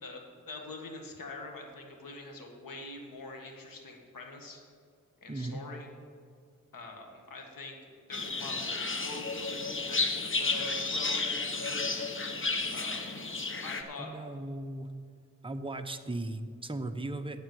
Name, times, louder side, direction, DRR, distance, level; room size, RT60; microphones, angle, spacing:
voice 1, 0.0-4.6 5.2-5.9 6.7-10.1 10.4-12.1 12.7-13.1 13.6-14.1, left 2 dB, 85° left, 2 dB, 1.7 m, -44 dB
voice 2, 5.3-5.6 14.0-14.9 15.4-17.4, right 2 dB, 15° right, 6 dB, 0.8 m, -37 dB
sound 1, 8.1-13.8, left 3 dB, 40° left, 1.1 m, -32 dB
8.9 x 7.9 x 7.6 m, 2.2 s
cardioid pair, 65°, 33 cm